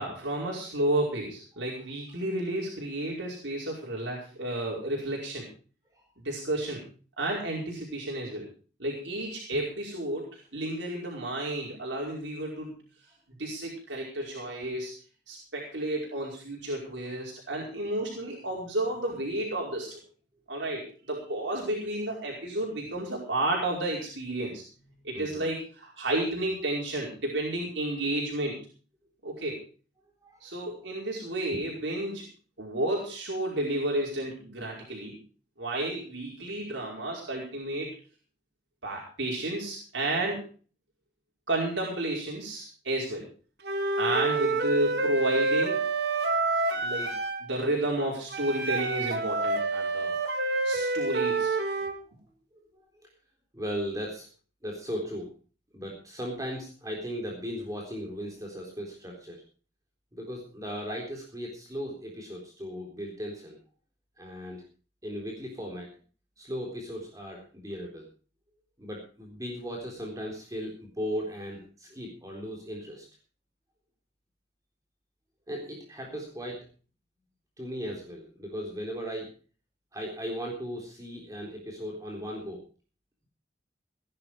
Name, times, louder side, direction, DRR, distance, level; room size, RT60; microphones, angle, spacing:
voice 1, 0.0-5.5 6.2-6.8 7.2-8.5 8.8-12.7 13.4-14.9 15.3-20.0 20.5-28.6 29.2-29.6 30.4-32.3 32.6-35.2 35.6-37.9 38.8-40.4 41.5-43.3 44.0-45.8 46.7-47.1 47.4-50.1 50.6-51.7, right 1 dB, 90° right, -2 dB, 5.1 m, -32 dB
voice 2, 25.1-25.4 30.2-30.5 51.8-51.9 52.5-52.6 53.5-54.3 54.6-55.3 55.7-59.4 60.1-63.6 64.2-64.6 65.0-65.9 66.4-68.1 68.8-73.1 75.5-76.6 77.6-79.3 79.9-82.6, equal, 20° right, 0 dB, 3.8 m, -37 dB
Wind instrument woodwind instrument, 43.6-47.5 48.3-52.0, right 3 dB, 65° right, 2.1 m, -28 dB
17.5 x 11.0 x 4.8 m, 0.39 s
head